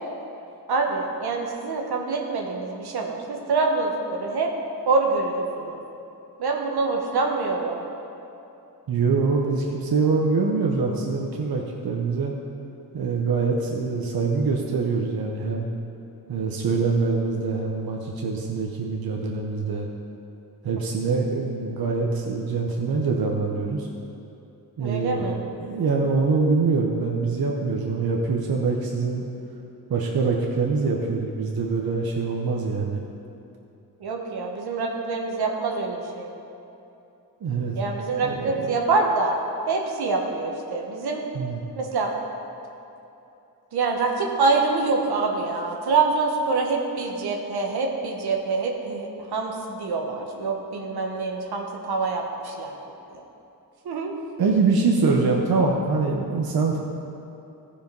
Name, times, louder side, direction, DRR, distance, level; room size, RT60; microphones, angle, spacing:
voice 1, 0.7-4.5 4.8-5.8 6.4-7.9 24.8-25.4 34.0-36.3 37.7-39.4 39.7-41.2 41.8-42.1 43.7-52.8 53.1-53.2 53.8-54.1, right 3 dB, 85° right, 1 dB, 1.3 m, -25 dB
voice 2, 8.9-12.3 12.9-15.7 16.3-19.9 20.6-23.9 24.8-29.2 29.9-33.0 37.4-37.8 38.2-38.7 41.3-41.6 54.4-56.8, right 4 dB, 70° right, -1 dB, 1.0 m, -24 dB
14.5 x 5.1 x 5.3 m, 2.8 s
cardioid pair, 65°, 37 cm